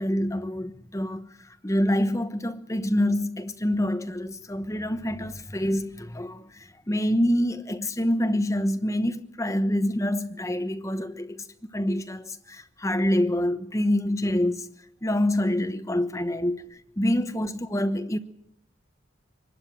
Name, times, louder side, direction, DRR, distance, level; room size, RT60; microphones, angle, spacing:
voice 1, 0.0-11.4 11.7-14.7 15.0-16.6 17.0-18.2, left 1 dB, 15° left, 1.0 m, -26 dB
23.5 x 12.0 x 9.2 m
head